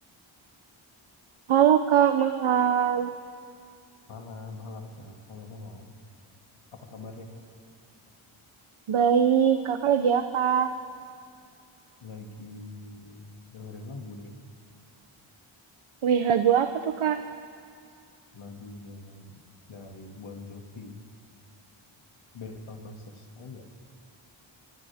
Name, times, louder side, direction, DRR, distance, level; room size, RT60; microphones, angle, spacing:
voice 1, 1.5-3.1 8.9-10.7 16.0-17.2, right 8 dB, 75° right, 8 dB, 0.9 m, -22 dB
voice 2, 4.1-5.9 6.9-7.4 12.0-13.2 13.5-14.3 18.3-19.3 19.7-21.0 22.3-23.0 23.4-23.6, left 3 dB, 75° left, 2 dB, 2.4 m, -42 dB
30.0 x 25.0 x 3.6 m, 2.3 s
wide cardioid pair, 95°, 49 cm